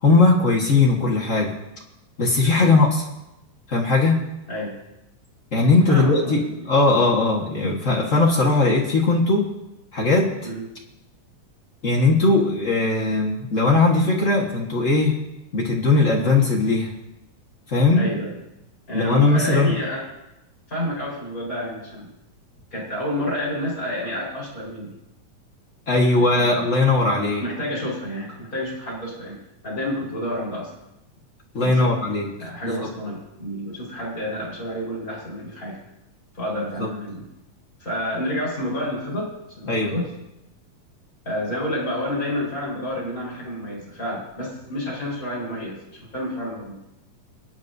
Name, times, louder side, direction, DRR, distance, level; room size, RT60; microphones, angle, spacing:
voice 1, 0.0-1.5 2.2-3.0 3.7-4.1 5.5-6.4 6.7-9.4 9.9-10.3 11.8-15.2 15.5-16.9 17.7-18.0 18.9-19.8 25.9-27.4 31.5-32.3 32.6-32.9 36.8-36.9 39.7-40.0, left 3 dB, 55° left, -1 dB, 0.8 m, -19 dB
voice 2, 5.9-6.7 10.4-10.6 17.9-18.4 18.9-20.1 20.7-22.1 22.7-25.0 26.2-26.7 27.4-29.4 29.6-30.7 31.5-35.8 36.3-37.3 37.8-39.3 39.6-40.1 41.2-45.8 46.1-46.8, equal, 25° left, -5 dB, 4.7 m, -29 dB
24.0 x 9.5 x 2.7 m, 0.91 s
omnidirectional pair, 3.9 m